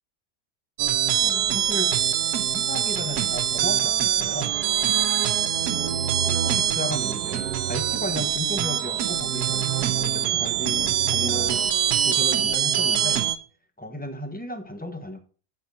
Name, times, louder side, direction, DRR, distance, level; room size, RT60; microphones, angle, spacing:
sound 1, 0.8-13.4, right 10 dB, 85° right, 1.3 m, -24 dB
voice 1, 1.2-1.9 2.5-4.6 6.2-11.7 12.0-13.3 13.8-15.2, equal, 10° left, 7 dB, 0.7 m, -34 dB
11.0 x 4.6 x 5.4 m, 0.40 s
omnidirectional pair, 1.6 m